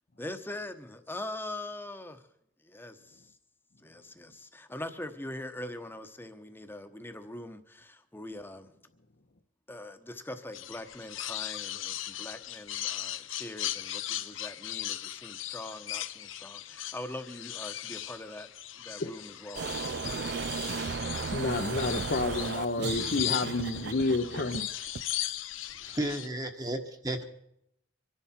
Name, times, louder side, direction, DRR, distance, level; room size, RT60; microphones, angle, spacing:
voice 1, 0.2-2.2 2.6-3.4 3.8-8.7 9.7-18.5 18.8-20.5, left 1 dB, 10° left, 1.1 m, -42 dB
sound 1, 10.5-26.3, left 13 dB, 90° left, 0.7 m, -38 dB
sound 2, 19.5-25.0, right 5 dB, 60° right, 0.5 m, -35 dB
voice 2, 21.0-24.7, left 2 dB, 55° left, 0.9 m, -30 dB
voice 3, 25.8-27.2, right 1 dB, 20° right, 1.2 m, -33 dB
25.0 x 11.0 x 4.4 m
head